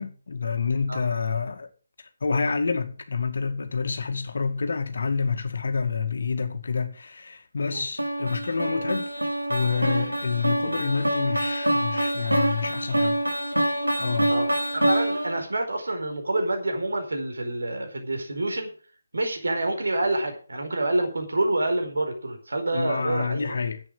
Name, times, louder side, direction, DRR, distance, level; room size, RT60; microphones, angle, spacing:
voice 1, 0.0-1.7 2.0-9.1 9.5-13.2 14.0-14.3 22.7-23.8, left 5 dB, 55° left, 2.1 m, -28 dB
sound 1, 8.0-15.4, right 1 dB, 90° right, 4.0 m, -26 dB
voice 2, 14.7-18.7 19.1-23.5, right 2 dB, 65° right, 4.5 m, -27 dB
11.0 x 8.3 x 7.7 m
figure-of-eight pair, 150°, 0 cm